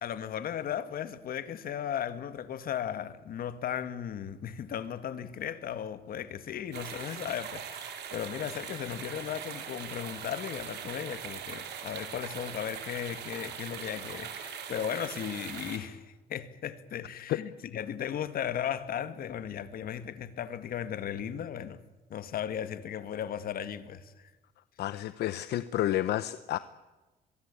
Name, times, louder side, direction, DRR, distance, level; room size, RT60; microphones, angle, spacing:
voice 1, 0.0-21.8 22.1-24.3, left 9 dB, 60° left, 2.0 m, -36 dB
sound 1, 6.7-15.8, right 8 dB, 85° right, 4.5 m, -41 dB
voice 2, 24.8-26.6, left 13 dB, 75° left, 0.9 m, -30 dB
23.5 x 22.5 x 8.5 m
cardioid pair, 130°, 17 cm